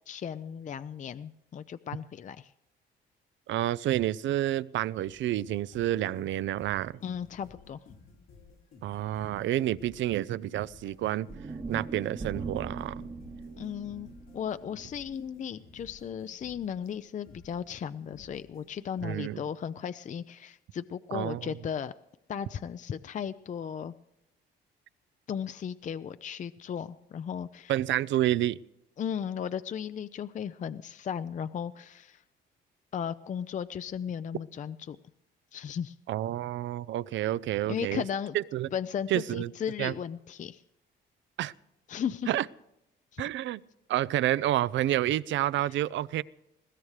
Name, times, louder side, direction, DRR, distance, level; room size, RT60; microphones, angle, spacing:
voice 1, 0.1-2.5 7.0-7.8 13.6-14.1 14.3-21.9 22.3-23.9 25.3-27.7 29.0-32.2 32.9-35.0 35.5-36.0 37.7-38.4 38.7-40.6 41.9-42.3 43.1-43.2, left 8 dB, 40° left, 13 dB, 0.4 m, -36 dB
voice 2, 3.5-7.0 8.8-11.3 11.7-13.1 19.0-19.4 21.1-21.5 27.7-28.6 36.1-38.0 38.3-38.7 39.1-39.5 39.8-40.0 41.4-41.5 42.3-42.5 43.2-43.6 43.9-46.2, right 13 dB, 70° right, 20 dB, 0.5 m, -29 dB
sound 1, 5.1-19.1, left 4 dB, 85° left, 2.7 m, -55 dB
sound 2, 11.3-15.5, right 4 dB, 25° right, 1.0 m, -41 dB
21.0 x 16.0 x 3.3 m, 0.85 s
cardioid pair, 90°, 20 cm